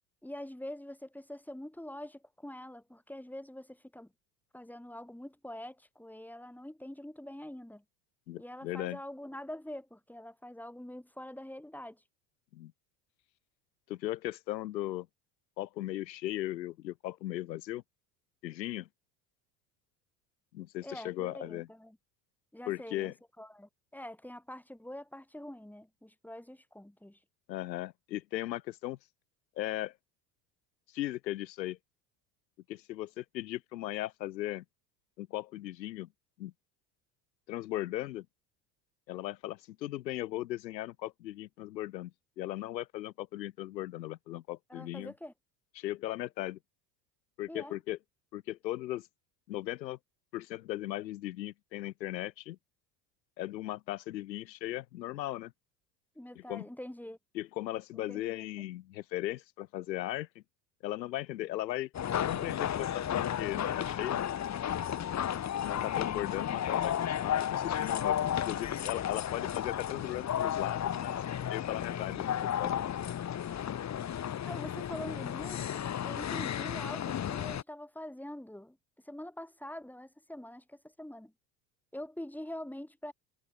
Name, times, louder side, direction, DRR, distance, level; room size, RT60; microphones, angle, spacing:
voice 1, 0.2-4.1 4.5-7.8 8.4-12.0 20.8-22.0 22.5-27.2 44.7-45.3 47.5-47.8 56.2-57.2 57.9-58.3 74.4-78.8 79.0-81.3 81.9-83.1, left 1 dB, 5° left, 7.3 m, -45 dB
voice 2, 8.3-9.0 12.5-12.7 13.9-15.1 15.6-17.8 18.4-18.9 20.5-21.7 22.7-23.1 27.5-29.0 29.6-29.9 30.9-31.8 32.7-34.6 35.2-36.1 36.4-36.5 37.5-38.3 39.1-45.1 45.8-46.6 47.4-48.0 48.3-49.1 49.5-50.0 50.3-52.6 53.4-55.5 56.4-56.7 57.3-60.4 60.8-61.9 62.3-64.2 65.6-71.1 71.5-73.2, left 15 dB, 85° left, 2.4 m, -37 dB
sound 1, 61.9-77.6, left 10 dB, 35° left, 1.5 m, -33 dB
hypercardioid pair, 75°, 50 cm